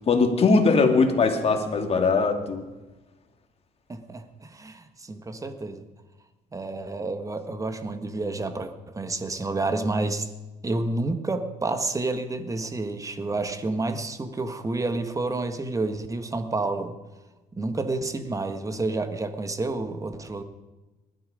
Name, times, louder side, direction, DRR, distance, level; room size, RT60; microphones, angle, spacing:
voice 1, 0.1-2.6, left 4 dB, 35° left, 4 dB, 2.6 m, -20 dB
voice 2, 3.9-5.8 6.5-10.3 10.6-16.9 17.5-20.4, right 2 dB, 20° right, 9 dB, 1.6 m, -29 dB
20.0 x 13.5 x 5.1 m, 1.1 s
cardioid pair, 110°, 17 cm